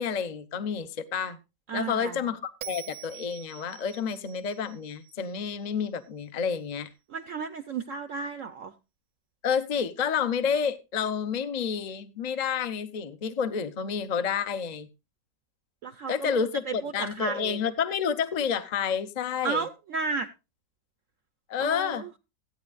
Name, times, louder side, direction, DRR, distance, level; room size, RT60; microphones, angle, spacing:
voice 1, 0.0-1.4 1.7-2.4 2.7-6.9 9.4-14.9 16.1-19.6 21.5-22.2, left 7 dB, 40° left, 0.6 m, -29 dB
voice 2, 1.7-2.3 7.1-8.7 15.8-17.6 19.4-20.3 21.6-22.1, right 5 dB, 60° right, 0.8 m, -33 dB
Bell, 2.6-5.9, right 12 dB, 75° right, 1.4 m, -45 dB
16.5 x 9.4 x 2.4 m
omnidirectional pair, 1.9 m